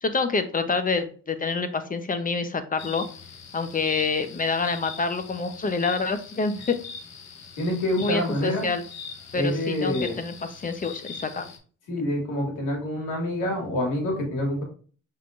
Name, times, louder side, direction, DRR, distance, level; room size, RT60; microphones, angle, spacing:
voice 1, 0.0-3.0 3.5-6.8 8.0-8.8 9.3-11.5, left 4 dB, 30° left, 9 dB, 0.7 m, -27 dB
sound 1, 2.8-11.6, left 5 dB, 60° left, 1.1 m, -42 dB
voice 2, 7.6-8.7 9.3-10.2 11.9-14.6, left 1 dB, 90° left, 1 dB, 2.0 m, -27 dB
5.6 x 3.8 x 2.5 m, 0.40 s
cardioid pair, 90°, 30 cm